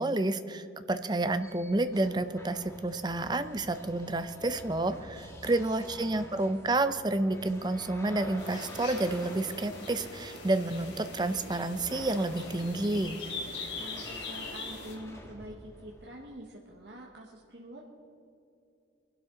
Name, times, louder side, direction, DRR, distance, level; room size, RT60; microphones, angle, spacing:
voice 1, 0.0-13.2, right 2 dB, 25° right, 11 dB, 0.6 m, -30 dB
sound 1, 1.3-16.2, left 1 dB, 15° left, 1.7 m, -48 dB
voice 2, 5.5-6.5 13.8-17.8, right 1 dB, 65° right, -2 dB, 1.4 m, -47 dB
sound 2, 8.4-14.9, left 3 dB, 80° left, 3.0 m, -42 dB
23.0 x 12.0 x 3.8 m, 2.6 s
head